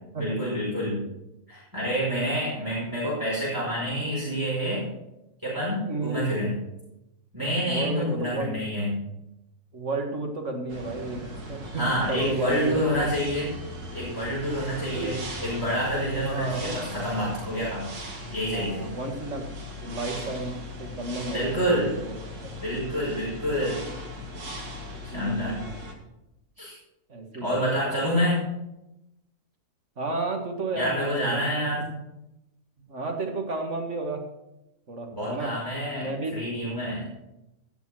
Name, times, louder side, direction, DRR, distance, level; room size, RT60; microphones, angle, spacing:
voice 1, 0.2-1.0 1.5-4.9 5.4-6.6 7.3-8.9 11.7-13.5 13.9-17.9 18.3-18.8 21.3-21.9 22.6-23.8 25.0-25.6 26.6-26.8 27.4-28.4 30.7-31.8 35.1-37.0, equal, 10° right, -8 dB, 5.2 m, -28 dB
voice 2, 5.9-6.2 7.7-8.6 9.7-13.1 14.9-15.1 16.2-16.7 18.5-19.5 19.8-21.7 22.0-22.1 22.4-22.5 25.1-25.7 27.1-27.6 30.0-31.8 32.9-34.2 34.9-35.6 36.0-36.4, right 2 dB, 50° right, 3 dB, 2.1 m, -32 dB
sound 1, 10.7-25.9, left 1 dB, 85° right, 2.5 m, -38 dB
16.5 x 7.0 x 6.3 m, 0.90 s
omnidirectional pair, 1.6 m